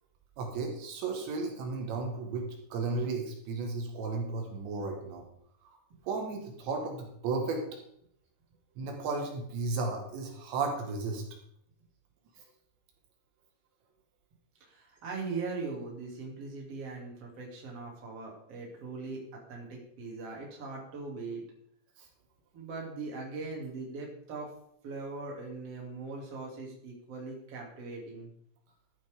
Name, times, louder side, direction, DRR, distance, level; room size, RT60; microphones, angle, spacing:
voice 1, 0.4-2.5 2.7-5.2 5.6-5.8 6.0-7.6 8.8-11.2 22.0-22.1, right 3 dB, 80° right, 2 dB, 3.9 m, -34 dB
voice 2, 14.6-21.4 22.5-24.5 24.8-28.3, right 3 dB, 35° right, -2 dB, 3.4 m, -40 dB
12.5 x 10.0 x 3.7 m, 0.69 s
omnidirectional pair, 5.1 m